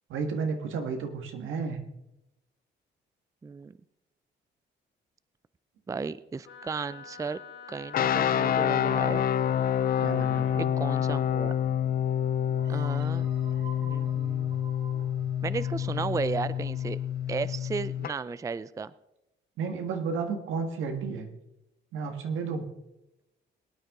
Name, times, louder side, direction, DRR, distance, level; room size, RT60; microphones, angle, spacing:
voice 1, 0.1-1.8 10.0-10.7 19.6-21.3 21.9-22.7, right 5 dB, 85° right, 5 dB, 1.8 m, -32 dB
voice 2, 3.4-3.7 5.9-7.4 7.7-9.3 10.8-11.5 12.7-13.3 13.8-14.5 15.4-17.0 17.3-18.9, right 5 dB, 15° right, 17 dB, 0.4 m, -34 dB
Wind instrument woodwind instrument, 6.4-10.6, left 7 dB, 75° left, 2.3 m, -47 dB
sound 1, 7.9-18.1, left 9 dB, 50° left, 0.4 m, -28 dB
sound 2, 12.6-18.1, right 4 dB, 65° right, 3.3 m, -49 dB
21.5 x 9.4 x 3.8 m, 0.91 s
cardioid pair, 90°, 20 cm